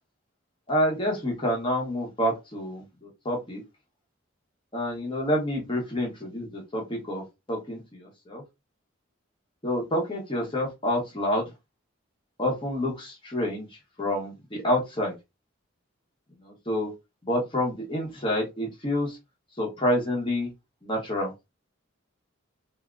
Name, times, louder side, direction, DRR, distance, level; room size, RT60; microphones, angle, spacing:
voice 1, 0.7-3.6 4.7-8.4 9.6-11.4 12.4-15.1 16.4-16.9 17.2-19.2 19.6-20.5 20.8-21.3, left 1 dB, 25° left, -1 dB, 1.0 m, -28 dB
3.5 x 2.7 x 2.5 m, 0.22 s
head